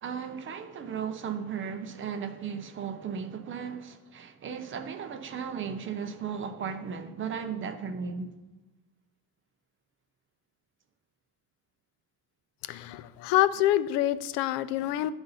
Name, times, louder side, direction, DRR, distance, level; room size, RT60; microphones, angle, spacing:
voice 1, 0.0-8.4, right 6 dB, 30° right, 0.5 m, -36 dB
voice 2, 12.7-15.1, left 13 dB, 80° left, 0.5 m, -26 dB
10.0 x 3.9 x 5.5 m
cardioid pair, 175°, 41 cm